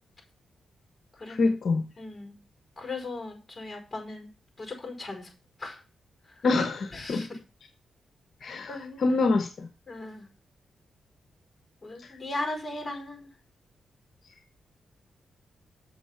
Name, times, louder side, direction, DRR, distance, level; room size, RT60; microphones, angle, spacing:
voice 1, 1.3-1.9 6.4-7.3 8.4-9.7 12.0-12.1, left 3 dB, 60° left, 1.0 m, -26 dB
voice 2, 2.0-2.4 2.8-4.3 4.6-5.3 5.6-5.8 6.3-6.5 6.9-7.4 8.7-9.2 9.9-10.3 11.8-13.3, left 2 dB, 20° left, 4.9 m, -37 dB
7.0 x 6.5 x 5.7 m
cardioid pair, 90°, 0 cm